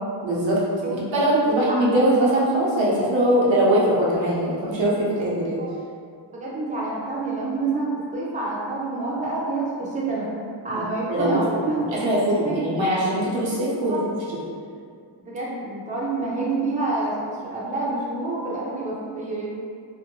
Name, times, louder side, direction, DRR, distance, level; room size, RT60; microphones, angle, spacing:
voice 1, 0.2-0.6 0.9-5.6 10.7-10.8 11.1-14.4, right 1 dB, 85° right, -6 dB, 0.8 m, -22 dB
voice 2, 1.5-1.8 5.6-5.7 6.3-11.8 12.2-12.7 13.9-14.0 15.2-19.4, right 3 dB, 15° right, -6 dB, 0.6 m, -28 dB
2.6 x 2.1 x 2.9 m, 2.2 s
cardioid pair, 70°, 44 cm